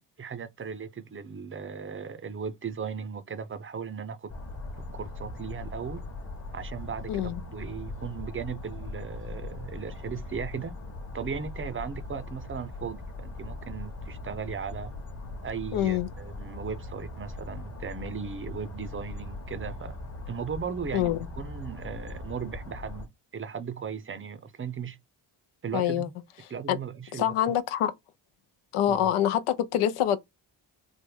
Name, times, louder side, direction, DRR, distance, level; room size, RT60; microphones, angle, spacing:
voice 1, 0.0-4.3 4.8-6.0 6.5-10.7 11.1-14.9 15.4-20.0 20.3-25.0 25.6-26.1 26.5-27.3 28.9-29.1, right 6 dB, 25° right, 0.5 m, -37 dB
sound 1, 4.3-23.1, left 2 dB, 30° left, 1.0 m, -40 dB
voice 2, 7.1-7.4 15.7-16.1 20.9-21.2 25.7-26.1 26.7-26.8 27.1-27.9 28.7-30.2, left 11 dB, 85° left, 0.6 m, -25 dB
3.3 x 2.1 x 3.4 m
cardioid pair, 60°, 49 cm